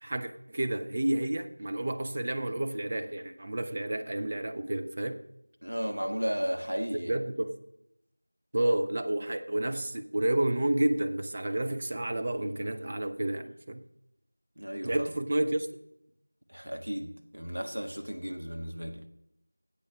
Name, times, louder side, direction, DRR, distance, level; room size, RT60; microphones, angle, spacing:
voice 1, 0.0-5.2 7.0-7.6 8.5-13.8 14.8-15.7, right 1 dB, 20° right, 0.4 m, -30 dB
voice 2, 5.6-7.1 14.6-15.1 16.5-19.1, equal, 80° right, 1.4 m, -34 dB
9.1 x 8.1 x 6.1 m
figure-of-eight pair, 180°, 0 cm